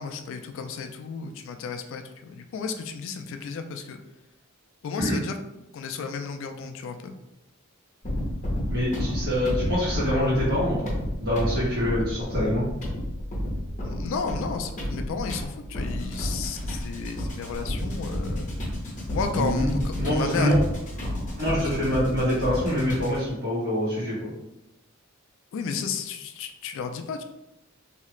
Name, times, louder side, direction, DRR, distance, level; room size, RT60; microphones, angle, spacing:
voice 1, 0.0-4.0 4.8-5.4 5.7-7.1 13.8-18.5 19.1-20.6 21.5-21.7 25.5-27.2, left 5 dB, 60° left, 6 dB, 0.3 m, -33 dB
sound 1, 8.0-23.3, left 1 dB, 35° left, 0.8 m, -31 dB
voice 2, 8.7-10.9 11.2-12.6 19.3-19.7 19.9-20.6 21.4-24.3, equal, 50° right, -7 dB, 1.4 m, -25 dB
2.8 x 2.4 x 3.1 m, 0.89 s
head